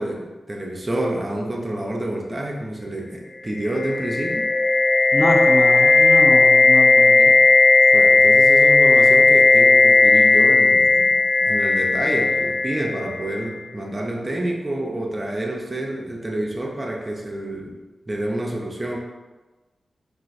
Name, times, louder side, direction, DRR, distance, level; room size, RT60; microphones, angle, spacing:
voice 1, 0.0-4.5 7.9-17.8 18.1-19.0, right 1 dB, 25° right, -1 dB, 0.5 m, -28 dB
sound 1, 3.5-13.4, left 3 dB, 85° left, 0.4 m, -15 dB
voice 2, 5.1-7.4, left 1 dB, 25° left, -1 dB, 0.5 m, -25 dB
2.4 x 2.4 x 3.9 m, 1.2 s
wide cardioid pair, 80°, 0 cm